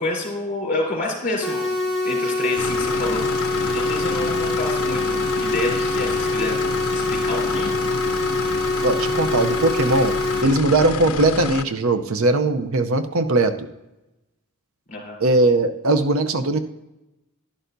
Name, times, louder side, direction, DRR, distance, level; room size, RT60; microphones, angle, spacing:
voice 1, 0.0-1.7 2.0-3.2 3.6-6.6 6.9-7.7 14.9-15.1, left 2 dB, 35° left, -1 dB, 3.4 m, -28 dB
sound 1, 1.4-10.4, left 2 dB, ahead, 2.6 m, -24 dB
sound 2, 2.6-11.6, left 6 dB, 70° left, 0.5 m, -29 dB
voice 2, 8.8-10.2 10.4-13.7 15.2-16.6, right 2 dB, 70° right, 9 dB, 0.6 m, -19 dB
11.5 x 11.0 x 2.6 m, 0.98 s
head